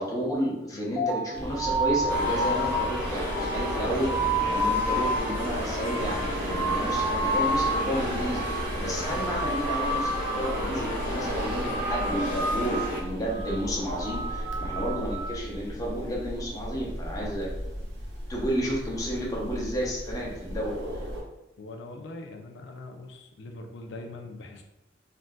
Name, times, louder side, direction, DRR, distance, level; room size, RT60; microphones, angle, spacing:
voice 1, 0.0-17.5 18.3-20.7, equal, 20° left, -4 dB, 0.7 m, -31 dB
sound 1, 1.0-7.9 8.2-8.7 9.0-10.4 10.7-11.2 11.5-12.9 13.3-13.6 14.0-15.3, right 1 dB, ahead, 1.0 m, -30 dB
sound 2, 1.3-21.2, equal, 65° right, 0.6 m, -36 dB
sound 3, 2.1-13.0, equal, 30° right, 1.5 m, -32 dB
voice 2, 21.6-24.6, left 2 dB, 65° left, 3 dB, 0.4 m, -42 dB
3.4 x 2.6 x 2.2 m, 0.92 s
head